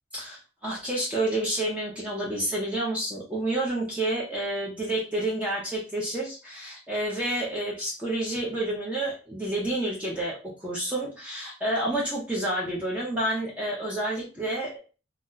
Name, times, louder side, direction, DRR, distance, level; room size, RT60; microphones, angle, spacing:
voice 1, 0.1-14.8, right 1 dB, 5° right, -5 dB, 0.6 m, -29 dB
2.7 x 2.1 x 3.8 m, 0.34 s
head